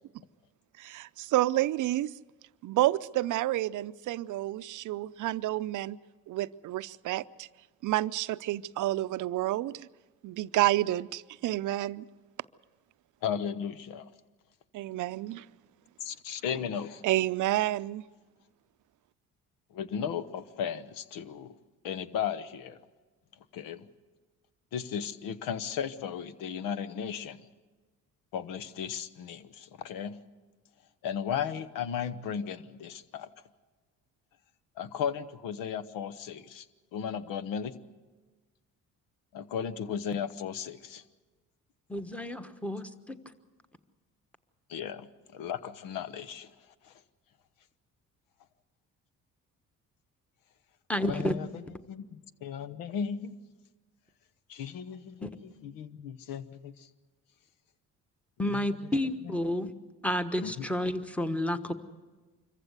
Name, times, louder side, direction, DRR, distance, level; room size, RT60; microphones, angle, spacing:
voice 1, 0.8-2.1 2.6-6.0 6.3-7.5 7.8-9.9 10.2-12.0 14.7-15.5 17.0-18.0, right 15 dB, 65° right, 0.6 m, -29 dB
voice 2, 13.2-14.1 16.0-17.0 19.7-21.6 21.8-22.8 23.5-23.9 24.7-27.4 28.3-30.2 31.0-33.3 34.8-36.7 36.9-37.7 39.3-41.0 44.7-46.5 46.8-46.9 51.0-53.4 54.5-56.9 58.5-58.6 59.2-59.4 60.4-60.7, left 8 dB, 80° left, 1.0 m, -35 dB
voice 3, 41.9-43.2 50.9-51.3 55.2-55.3 58.4-59.7 60.0-61.7, left 1 dB, 5° left, 1.3 m, -30 dB
25.0 x 15.0 x 8.1 m
cardioid pair, 80°, 33 cm